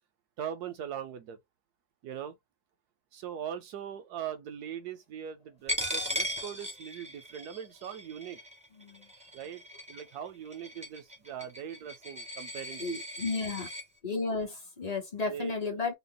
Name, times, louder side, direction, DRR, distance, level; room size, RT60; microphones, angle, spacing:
voice 1, 0.4-1.4 2.0-2.4 3.1-8.4 9.3-9.6 9.9-12.8 15.3-15.8, right 9 dB, 75° right, 0.9 m, -40 dB
Coin (dropping), 5.7-13.8, equal, 5° right, 0.5 m, -38 dB
voice 2, 8.7-9.1 12.8-13.7 14.0-15.9, left 3 dB, 40° left, 0.6 m, -33 dB
3.5 x 2.2 x 3.7 m
omnidirectional pair, 2.0 m